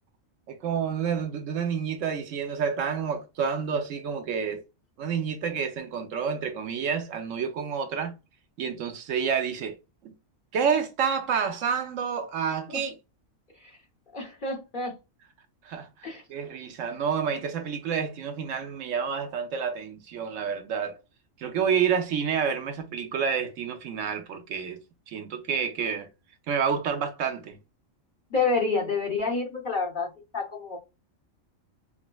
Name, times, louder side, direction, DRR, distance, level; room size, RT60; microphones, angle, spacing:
voice 1, 0.5-4.6 5.0-8.1 8.6-9.7 10.5-12.9 15.6-21.0 21.4-24.8 25.1-26.1 26.5-27.6, right 7 dB, 70° right, 1.0 m, -29 dB
voice 2, 14.1-15.0 16.0-16.2 28.3-30.8, left 4 dB, 45° left, 0.9 m, -28 dB
4.9 x 2.0 x 2.2 m
omnidirectional pair, 1.4 m